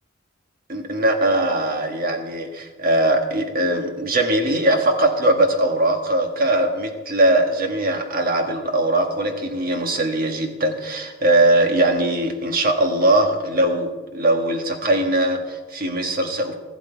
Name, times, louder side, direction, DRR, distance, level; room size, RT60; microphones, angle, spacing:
voice 1, 0.7-16.5, right 1 dB, 45° right, 4 dB, 1.5 m, -20 dB
14.0 x 12.0 x 4.6 m, 1.3 s
head